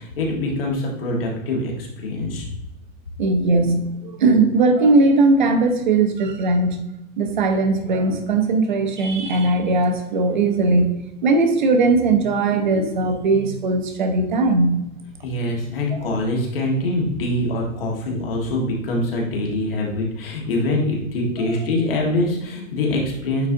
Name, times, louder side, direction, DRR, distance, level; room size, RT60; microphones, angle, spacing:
voice 1, 0.0-2.5 15.2-23.5, left 1 dB, 40° left, -1 dB, 1.7 m, -24 dB
voice 2, 3.2-6.8 7.2-10.9 11.2-14.8, right 3 dB, 35° right, 5 dB, 0.8 m, -19 dB
9.1 x 4.0 x 2.7 m, 0.89 s
hypercardioid pair, 170°, 42 cm